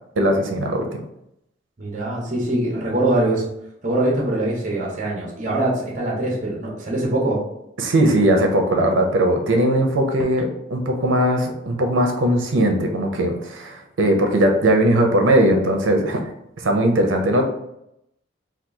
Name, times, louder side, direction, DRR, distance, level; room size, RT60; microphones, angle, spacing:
voice 1, 0.2-1.0 7.8-16.3 16.6-17.4, right 1 dB, 75° right, 3 dB, 0.6 m, -19 dB
voice 2, 1.8-3.4 3.8-7.4, right 1 dB, 40° right, -3 dB, 0.8 m, -23 dB
2.9 x 2.3 x 3.5 m, 0.80 s
head